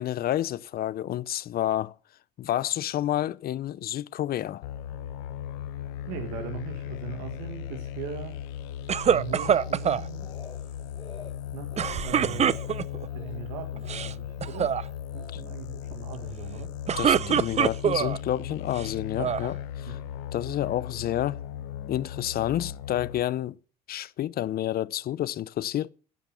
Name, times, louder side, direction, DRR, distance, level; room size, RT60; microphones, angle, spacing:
voice 1, 0.0-1.9 2.4-4.6 15.3-15.4 17.0-20.0 20.3-21.4 21.9-23.6 23.9-25.9, left 12 dB, 55° left, 0.6 m, -29 dB
sound 1, 4.6-23.2, left 10 dB, 80° left, 0.8 m, -37 dB
voice 2, 6.1-8.4 9.1-10.3 11.5-11.7 12.0-12.6 13.1-14.7 15.1-16.7 19.9-20.0, right 7 dB, 85° right, 1.8 m, -39 dB
Speech, 8.9-9.9 10.2-10.6 10.9-11.3 11.7-12.0 12.4-12.7 13.1-13.4 13.8-14.1 14.5-15.4 16.1-16.4, left 4 dB, 25° left, 5.6 m, -47 dB
sound 2, 8.9-10.0 11.8-13.1 13.8-14.1 14.4-14.8 16.6-18.2 18.7-19.5, right 8 dB, 35° right, 0.6 m, -24 dB
13.5 x 9.0 x 5.8 m
hypercardioid pair, 65°, 18 cm